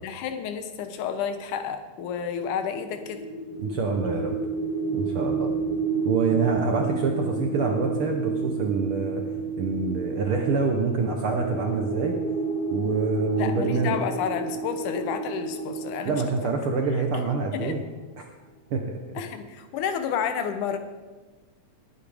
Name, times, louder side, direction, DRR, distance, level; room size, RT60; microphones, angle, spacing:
voice 1, 0.0-3.2 13.4-16.2 17.5-17.7 19.2-20.8, left 7 dB, 85° left, 8 dB, 2.4 m, -30 dB
sound 1, 2.7-17.7, right 4 dB, 60° left, 2.6 m, -31 dB
voice 2, 3.6-4.3 4.9-5.5 6.0-9.2 9.6-12.2 12.7-13.9 16.0-17.8 18.2-18.3 18.7-19.0, right 4 dB, 65° right, 2 dB, 1.4 m, -26 dB
20.5 x 8.6 x 3.5 m, 1.3 s
omnidirectional pair, 3.5 m